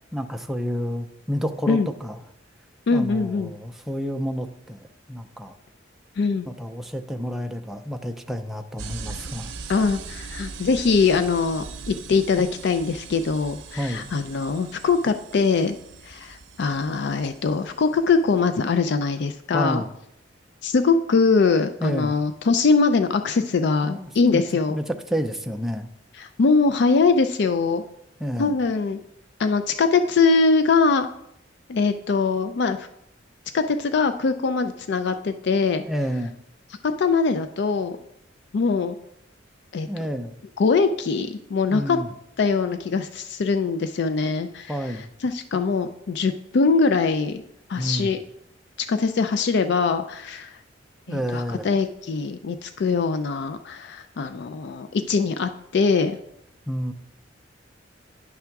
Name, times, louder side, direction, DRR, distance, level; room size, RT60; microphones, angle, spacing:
voice 1, 0.1-2.2 2.9-5.5 6.4-9.5 13.8-14.1 19.5-19.9 21.8-22.1 23.8-25.9 28.2-28.5 35.8-36.3 39.9-40.4 41.7-42.1 44.7-45.1 47.7-48.1 51.1-51.7 56.7-56.9, equal, ahead, 5 dB, 0.4 m, -29 dB
voice 2, 2.9-3.5 6.2-6.5 9.7-15.8 16.0-19.8 20.6-24.8 26.2-27.8 28.4-29.0 29.4-31.1 31.7-32.9 33.5-35.8 37.0-38.0 38.5-39.0 39.7-39.9 40.6-42.0 42.4-44.8 45.2-47.4 47.7-48.2 48.8-50.6 51.1-56.2, left 4 dB, 60° left, 9 dB, 0.4 m, -22 dB
sound 1, 8.8-18.7, right 5 dB, 85° right, 0.7 m, -40 dB
9.6 x 3.5 x 5.8 m, 0.77 s
head